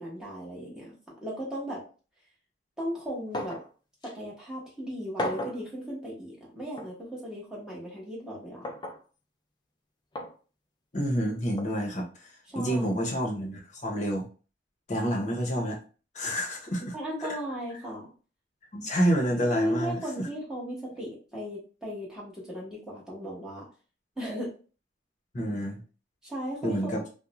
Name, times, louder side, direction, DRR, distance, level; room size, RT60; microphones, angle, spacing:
voice 1, 0.0-1.8 2.8-3.6 4.0-8.7 12.5-13.0 16.9-18.1 19.5-23.7 24.2-24.5 26.2-27.1, equal, 5° right, -5 dB, 1.0 m, -36 dB
sound 1, 3.3-3.7 4.0-4.1 5.2-5.6 6.8-6.9 8.6-9.0 10.2-10.3 11.6-11.7, left 1 dB, 25° left, 0.3 m, -34 dB
voice 2, 10.9-12.3 12.6-14.3 14.9-15.8 16.1-16.9 17.2-17.3 18.7-20.3 25.3-25.8 26.6-27.0, equal, 40° left, -1 dB, 0.7 m, -28 dB
2.5 x 2.1 x 2.9 m, 0.36 s
head